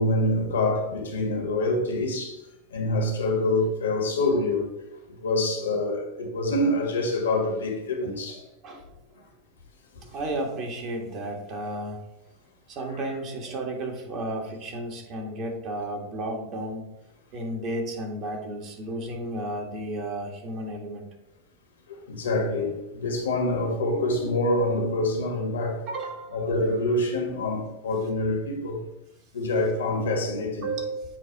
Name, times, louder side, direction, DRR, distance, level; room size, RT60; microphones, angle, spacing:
voice 1, 0.0-2.4 2.7-4.7 5.1-8.5 9.9-10.0 21.9-25.9 26.3-28.8 29.3-30.7, left 2 dB, 85° left, 1.5 m, -26 dB
voice 2, 10.1-12.0 12.7-16.9 17.3-21.1 25.9-26.4 30.6-31.0, right 1 dB, 45° right, 1.5 m, -33 dB
7.4 x 2.5 x 5.1 m
hypercardioid pair, 100°, 0 cm